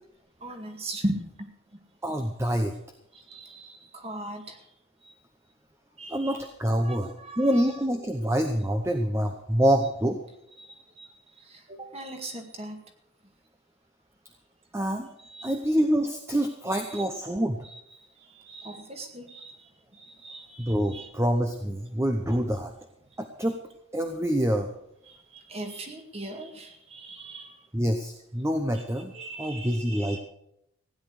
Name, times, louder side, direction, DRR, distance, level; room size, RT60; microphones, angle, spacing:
voice 1, 0.4-1.8 3.1-4.7 5.0-5.1 6.0-6.4 6.8-7.6 10.6-12.8 15.2-15.6 16.9-17.0 17.6-21.1 25.1-27.7 28.7-28.8 29.1-30.2, right 1 dB, 30° right, 4 dB, 2.0 m, -39 dB
voice 2, 2.0-2.7 6.1-10.2 14.7-15.1 15.4-17.6 20.6-22.7 23.2-23.6 23.9-24.7 27.7-29.1 29.4-30.2, equal, 15° right, 5 dB, 0.9 m, -26 dB
16.0 x 10.0 x 6.5 m, 0.79 s
head